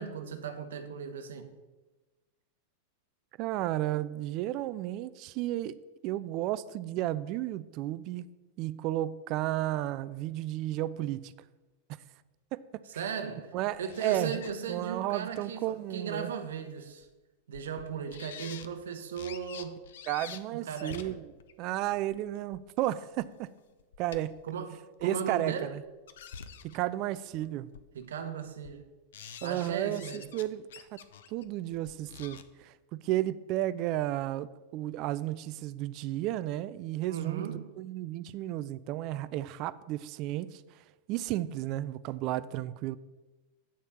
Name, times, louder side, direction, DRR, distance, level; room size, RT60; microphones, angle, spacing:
voice 1, 0.0-1.5 13.0-17.1 17.5-19.8 20.5-21.2 24.4-25.7 27.9-28.8 29.4-30.3 37.1-37.7, right 7 dB, 60° right, 0.9 m, -37 dB
voice 2, 3.4-8.3 8.6-11.3 12.5-12.8 13.5-14.4 14.7-16.3 20.1-21.3 21.6-23.5 24.0-24.4 25.0-25.8 26.6-27.7 29.4-31.0 31.3-37.4 37.8-40.6 41.1-43.0, right 14 dB, 40° right, 0.3 m, -33 dB
sound 1, 13.7-14.5 14.9-15.1 16.3-16.4 17.0-17.1 17.5-17.8 18.1-18.7 19.2-20.4 20.7-22.6 23.2-23.3 23.6-24.4 25.0-25.1 25.8-26.9 27.4-27.5 27.7-28.1 28.5-28.8 29.1-30.4 30.7-32.5, left 7 dB, 60° left, 0.5 m, -47 dB
8.6 x 4.2 x 7.1 m
figure-of-eight pair, 90°, 0 cm